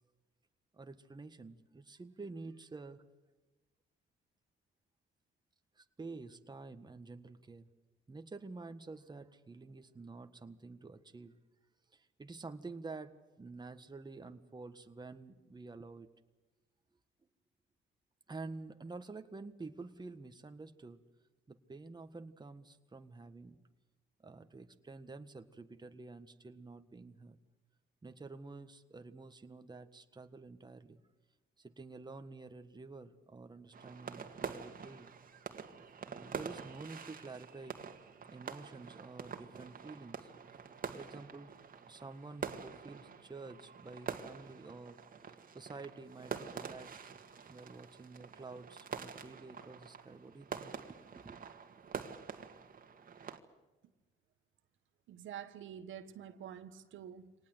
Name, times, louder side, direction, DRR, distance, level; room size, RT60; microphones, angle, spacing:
voice 1, 0.7-3.0 5.8-7.7 8.1-11.3 11.9-16.1 18.3-21.0 21.5-23.6 24.2-27.4 28.0-31.0 31.6-35.1 36.1-37.8 38.3-40.3 40.9-41.6 41.9-47.2 47.5-51.4, right 3 dB, 20° right, 1.6 m, -49 dB
sound 1, 33.7-53.4, right 6 dB, 45° right, 2.1 m, -46 dB
voice 2, 55.1-57.3, right 9 dB, 75° right, 1.4 m, -47 dB
25.0 x 19.0 x 8.0 m
cardioid pair, 90°, 20 cm